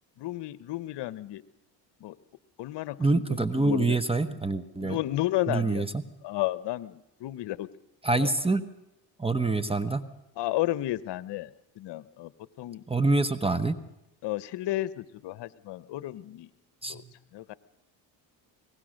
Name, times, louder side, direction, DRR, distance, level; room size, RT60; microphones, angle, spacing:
voice 1, 0.2-1.4 2.0-2.1 2.6-4.0 4.8-5.9 6.2-7.7 8.1-8.3 10.4-11.5 11.8-12.3 12.6-12.8 14.2-16.5 16.9-17.0 17.3-17.5, left 15 dB, 60° left, 17 dB, 1.0 m, -32 dB
voice 2, 3.0-5.0 5.5-6.0 8.0-8.6 9.2-10.0 12.9-13.7 16.8-17.1, right 3 dB, 10° right, 13 dB, 1.1 m, -26 dB
22.5 x 19.5 x 6.5 m, 0.86 s
supercardioid pair, 80°, 48 cm